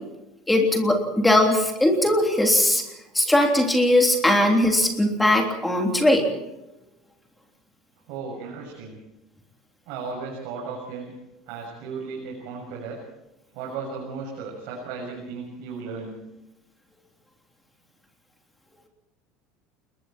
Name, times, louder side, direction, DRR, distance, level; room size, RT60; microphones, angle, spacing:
voice 1, 0.5-2.8 3.1-6.3, left 1 dB, 5° left, 2 dB, 3.3 m, -19 dB
voice 2, 8.1-9.0 9.9-11.1 11.5-13.0 13.5-16.2, right 4 dB, 60° right, -2 dB, 6.9 m, -35 dB
28.5 x 21.5 x 4.5 m, 0.93 s
cardioid pair, 175°, 0 cm